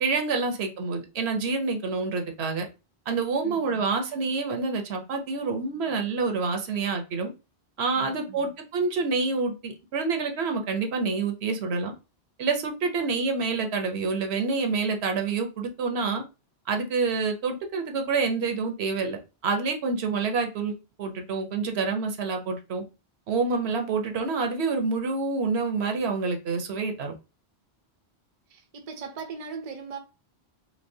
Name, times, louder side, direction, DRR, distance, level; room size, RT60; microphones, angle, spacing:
voice 1, 0.0-2.6 3.1-7.3 7.8-11.9 12.4-16.2 16.7-20.7 21.0-22.8 23.3-27.1, right 4 dB, 75° right, 0.9 m, -27 dB
voice 2, 3.4-3.9 8.0-8.5 13.0-13.1 28.5-30.0, right 5 dB, 45° right, 0.6 m, -39 dB
3.2 x 2.9 x 2.6 m
omnidirectional pair, 1.1 m